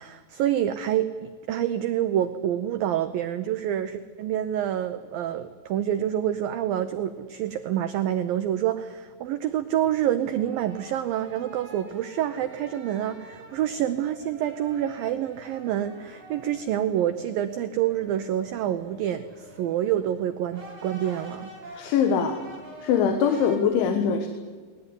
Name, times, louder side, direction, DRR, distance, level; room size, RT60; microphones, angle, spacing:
voice 1, 0.0-21.5, right 11 dB, 80° right, 10 dB, 2.0 m, -27 dB
sound 1, 9.5-23.6, right 2 dB, 35° right, 7.5 m, -46 dB
voice 2, 21.8-22.4 22.8-24.3, left 7 dB, 90° left, 7 dB, 3.9 m, -22 dB
20.0 x 19.5 x 9.8 m, 1.5 s
omnidirectional pair, 5.3 m